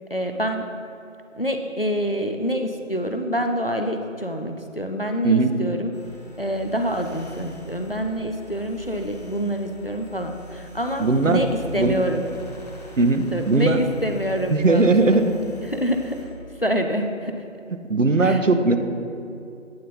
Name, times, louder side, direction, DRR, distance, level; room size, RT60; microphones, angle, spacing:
voice 1, 0.1-0.7 1.3-5.9 6.4-12.3 13.2-15.0 15.7-16.3 16.6-17.4 18.2-18.4, equal, 45° left, 5 dB, 0.4 m, -26 dB
sound 1, 5.9-16.2, right 2 dB, 30° left, 1.3 m, -42 dB
voice 2, 11.0-11.4 11.7-12.0 13.0-13.8 14.5-15.3 17.9-18.8, right 3 dB, 70° right, 8 dB, 0.8 m, -18 dB
9.3 x 4.0 x 5.5 m, 2.6 s
figure-of-eight pair, 170°, 39 cm